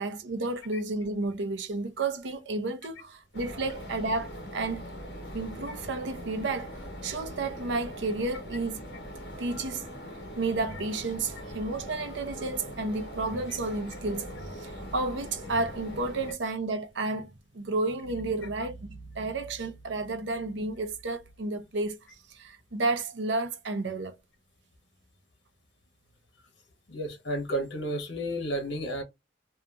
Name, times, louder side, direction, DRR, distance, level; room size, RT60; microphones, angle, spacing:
voice 1, 0.0-4.8 5.3-8.8 9.4-9.8 10.4-22.0 22.3-24.2, right 3 dB, 85° right, 0.6 m, -32 dB
sound 1, 3.3-16.3, equal, 65° left, 1.2 m, -41 dB
voice 2, 26.9-29.0, right 1 dB, 90° left, 1.0 m, -32 dB
2.9 x 2.3 x 2.4 m
head